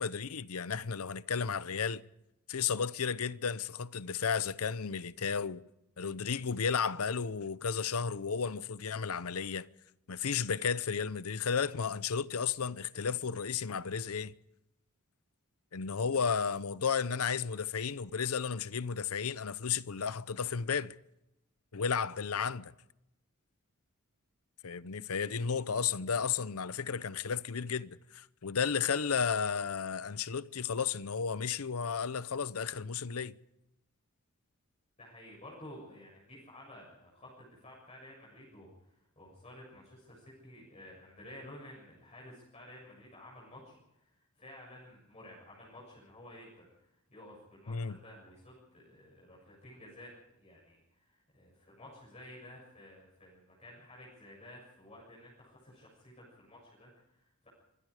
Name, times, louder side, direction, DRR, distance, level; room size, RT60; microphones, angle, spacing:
voice 1, 0.0-2.0 2.5-5.6 6.0-9.7 10.1-14.3 15.7-21.0 21.7-22.7 24.6-33.3 47.7-48.0, left 6 dB, 70° left, 0.7 m, -33 dB
voice 2, 35.0-50.1 50.4-57.5, left 1 dB, 30° left, 7.2 m, -53 dB
25.5 x 21.5 x 5.0 m
head